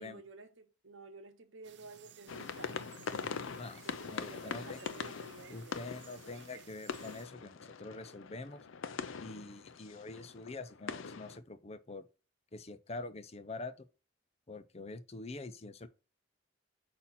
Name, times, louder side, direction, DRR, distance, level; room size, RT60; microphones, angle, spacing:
voice 1, 0.0-5.9, right 3 dB, 75° right, 1.0 m, -53 dB
sound 1, 1.6-7.3, right 9 dB, 60° right, 0.5 m, -58 dB
sound 2, 2.3-11.4, left 5 dB, 80° left, 0.6 m, -43 dB
voice 2, 3.6-4.8 5.5-8.6 9.2-12.1 12.5-13.9 14.5-15.9, left 3 dB, 30° left, 0.6 m, -45 dB
8.5 x 2.9 x 5.7 m
head